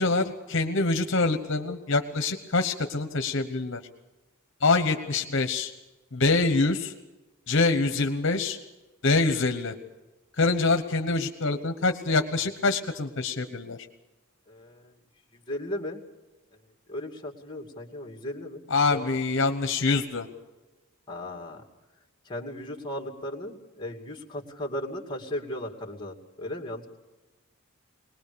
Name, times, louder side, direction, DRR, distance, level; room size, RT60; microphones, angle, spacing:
voice 1, 0.0-3.8 4.6-5.7 6.1-6.9 7.5-8.6 9.0-9.7 10.4-13.8 18.7-20.3, left 3 dB, 60° left, 7 dB, 1.1 m, -25 dB
voice 2, 14.5-14.9 15.5-16.0 16.9-19.1 21.1-21.6 22.3-26.9, left 1 dB, 20° left, 2 dB, 2.5 m, -36 dB
22.0 x 20.0 x 6.9 m, 1.1 s
head